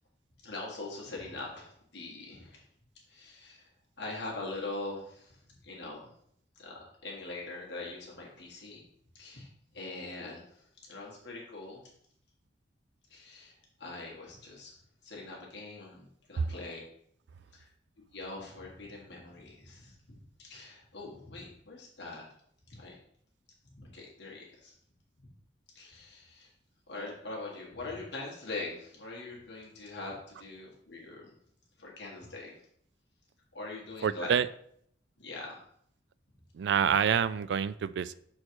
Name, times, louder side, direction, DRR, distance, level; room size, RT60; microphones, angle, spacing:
voice 1, 0.4-2.6 3.1-3.7 4.0-6.1 6.5-8.8 9.1-11.8 13.1-14.8 15.0-16.8 17.5-17.7 18.1-22.2 22.7-23.0 23.7-24.7 25.7-26.5 26.9-31.3 31.8-32.5 33.5-34.3 35.2-35.6, left 2 dB, 70° left, -3 dB, 1.7 m, -43 dB
voice 2, 34.0-34.5 36.5-38.1, right 7 dB, 70° right, 15 dB, 0.3 m, -27 dB
6.2 x 4.4 x 4.6 m, 0.69 s
head